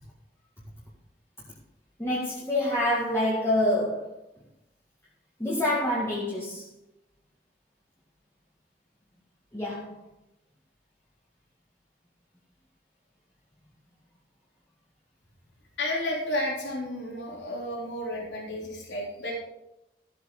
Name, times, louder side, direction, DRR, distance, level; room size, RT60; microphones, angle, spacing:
voice 1, 2.0-4.1 5.4-6.7 9.5-10.0, left 1 dB, 15° left, -6 dB, 2.0 m, -27 dB
voice 2, 15.8-19.4, left 1 dB, 85° left, -3 dB, 3.8 m, -32 dB
14.5 x 8.0 x 5.0 m, 0.88 s
head